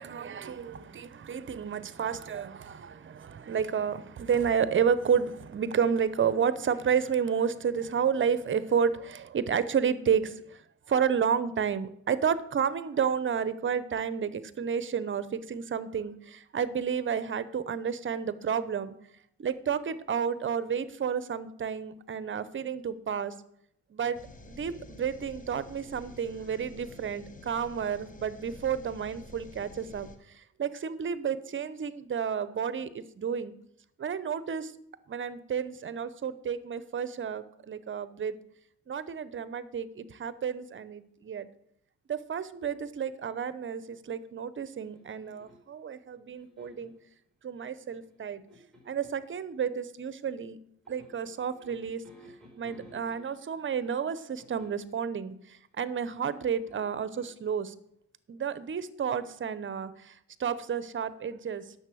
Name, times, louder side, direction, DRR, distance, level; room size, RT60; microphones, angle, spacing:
voice 1, 0.0-18.9 19.4-23.3 23.9-24.2 24.5-33.5 34.0-34.7 35.1-38.4 38.9-41.5 42.1-46.9 47.4-48.4 48.9-50.6 50.9-52.0 52.6-57.7 58.3-61.7, right 7 dB, 40° right, 15 dB, 0.8 m, -31 dB
sound 1, 24.1-30.2, left 2 dB, 25° left, 1.2 m, -49 dB
sound 2, 44.7-45.8 46.4-47.0 48.0-49.3 50.9-53.6 54.4-55.0 56.1-57.5, equal, ahead, 4.6 m, -55 dB
10.0 x 6.9 x 6.3 m, 0.71 s
cardioid pair, 90°, 30 cm